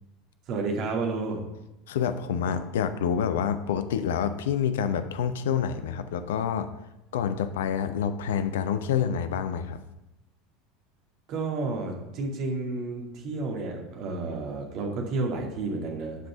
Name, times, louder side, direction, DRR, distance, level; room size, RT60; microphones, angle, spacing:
voice 1, 0.5-1.4 11.3-16.2, right 3 dB, 45° right, 1 dB, 2.3 m, -31 dB
voice 2, 1.9-6.7 7.1-9.8, left 8 dB, 65° left, 11 dB, 0.6 m, -27 dB
10.0 x 5.3 x 5.6 m, 0.94 s
figure-of-eight pair, 75°, 0 cm